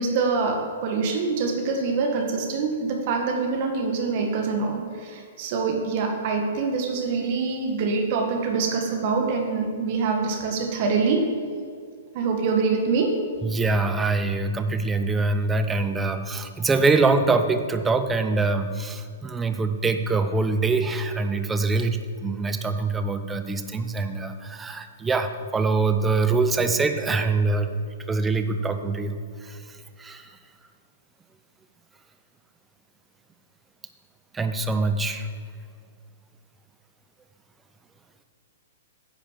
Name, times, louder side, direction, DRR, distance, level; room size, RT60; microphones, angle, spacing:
voice 1, 0.0-11.3 12.1-13.2, right 4 dB, 50° right, 3 dB, 1.6 m, -25 dB
voice 2, 13.4-27.8 28.1-30.3 34.3-35.3, right 3 dB, 10° right, 8 dB, 0.7 m, -24 dB
10.0 x 5.1 x 7.4 m, 2.2 s
hypercardioid pair, 135°, 0 cm